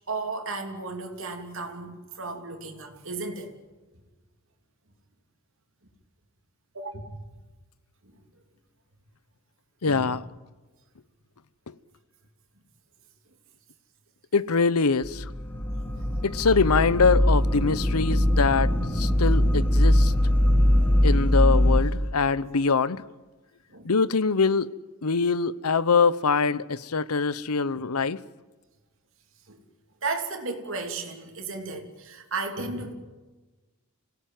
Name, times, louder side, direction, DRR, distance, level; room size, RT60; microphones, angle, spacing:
voice 1, 0.1-3.5 6.7-7.2 8.0-8.1 9.8-10.1 20.6-21.0 23.7-23.9 27.7-27.8 29.5-29.6 30.0-32.9, right 3 dB, 60° right, 3.3 m, -34 dB
voice 2, 9.8-10.2 14.3-15.3 16.2-20.1 21.0-23.0 23.8-24.7 25.0-28.2, left 4 dB, 85° left, 0.8 m, -23 dB
sound 1, 15.0-21.8, left 1 dB, 10° left, 3.0 m, -21 dB
26.5 x 17.5 x 9.4 m
head